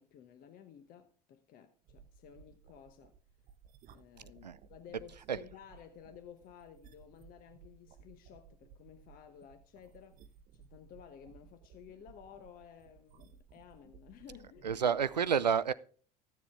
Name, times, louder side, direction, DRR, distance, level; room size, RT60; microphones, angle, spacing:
voice 1, 0.0-3.1 3.9-10.2 10.5-14.7, left 9 dB, 45° left, 1.0 m, -55 dB
sound 1, 1.9-15.2, right 7 dB, 45° right, 0.7 m, -59 dB
voice 2, 14.6-15.7, right 7 dB, 90° right, 0.4 m, -29 dB
14.0 x 7.4 x 3.5 m
figure-of-eight pair, 65°, 21 cm